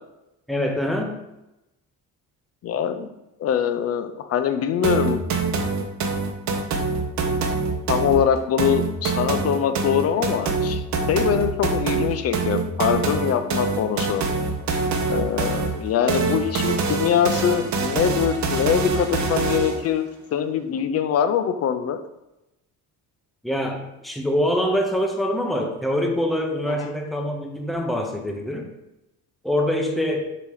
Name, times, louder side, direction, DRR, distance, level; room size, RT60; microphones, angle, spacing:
voice 1, 0.5-1.2 23.4-28.7 29.4-30.3, equal, ahead, 2 dB, 0.6 m, -24 dB
voice 2, 2.6-3.1 3.4-5.2 7.9-10.8 11.1-14.2 15.1-22.0 26.7-26.9, left 8 dB, 45° left, 9 dB, 0.5 m, -23 dB
sound 1, 4.8-19.9, right 4 dB, 55° right, 0.8 m, -25 dB
7.0 x 2.9 x 4.8 m, 0.92 s
cardioid pair, 175°, 34 cm